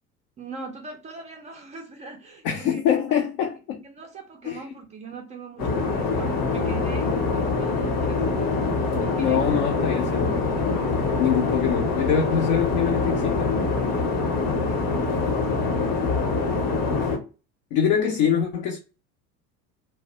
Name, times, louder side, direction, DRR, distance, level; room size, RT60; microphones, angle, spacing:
voice 1, 0.4-2.8 3.8-8.7 9.0-9.6 10.0-10.2 14.7-16.3, right 4 dB, 15° right, 0.4 m, -42 dB
voice 2, 2.4-3.8 4.4-4.6 9.2-10.5 11.2-13.6 17.7-18.8, left 8 dB, 45° left, 0.5 m, -24 dB
sound 1, 5.6-17.2, left 3 dB, 65° left, 1.0 m, -24 dB
2.4 x 2.1 x 2.8 m
figure-of-eight pair, 70°, 49 cm